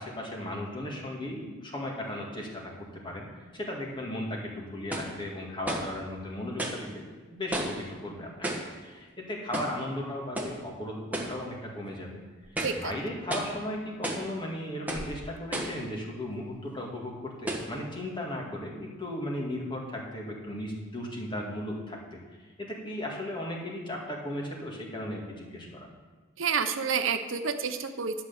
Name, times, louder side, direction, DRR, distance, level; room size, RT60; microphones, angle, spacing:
voice 1, 0.0-8.5 8.7-12.1 12.5-25.9, left 1 dB, 25° left, -2 dB, 2.1 m, -36 dB
sound 1, 3.9-4.0 4.9-5.2 5.6-6.0 6.6-6.9 7.5-7.9 8.4-8.7 9.5-9.8 10.4-10.6 11.1-11.4 11.8-11.9 12.4-12.9 13.3-13.6 14.0-14.3 14.9-15.2 15.5-15.8 16.5-16.6 17.5-17.7, right 1 dB, 10° right, 1.3 m, -33 dB
voice 2, 12.6-12.9 26.4-28.2, right 6 dB, 80° right, 8 dB, 0.8 m, -29 dB
11.5 x 6.1 x 7.0 m, 1.4 s
head